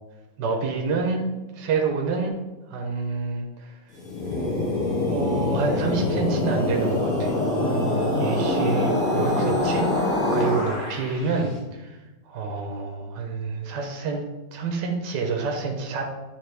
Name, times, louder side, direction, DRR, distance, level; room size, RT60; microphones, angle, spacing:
voice 1, 0.4-1.2 1.5-2.3 2.7-3.8 5.1-7.3 7.6-12.0 12.2-14.2 14.5-16.0, right 4 dB, 70° right, 2 dB, 1.4 m, -28 dB
sound 1, 3.9-11.3, left 1 dB, 45° left, 2.0 m, -24 dB
10.0 x 3.6 x 3.3 m, 1.1 s
omnidirectional pair, 2.0 m